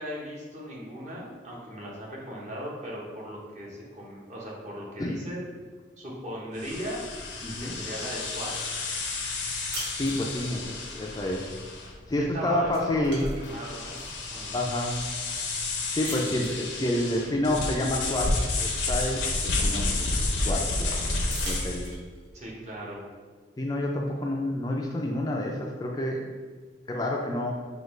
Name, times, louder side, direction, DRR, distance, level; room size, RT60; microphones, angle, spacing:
voice 1, 0.0-5.4 6.0-7.1 7.6-8.5 12.2-14.5 22.3-23.0, equal, 40° right, -4 dB, 0.9 m, -38 dB
sound 1, 6.6-21.9, left 2 dB, 80° left, 0.6 m, -31 dB
voice 2, 7.4-7.8 10.0-11.5 12.1-13.3 14.5-15.0 15.9-19.3 19.6-20.1 20.4-21.0 21.4-21.9 23.6-26.3 26.9-27.5, left 1 dB, 20° left, 0 dB, 0.3 m, -29 dB
sound 2, 9.7-10.7 12.1-12.3 12.6-14.3 14.9-15.0 16.0-16.6 18.1-18.2 18.5-20.1 21.2-22.3, right 1 dB, 75° right, 1.2 m, -42 dB
5.0 x 2.3 x 3.1 m, 1.5 s
head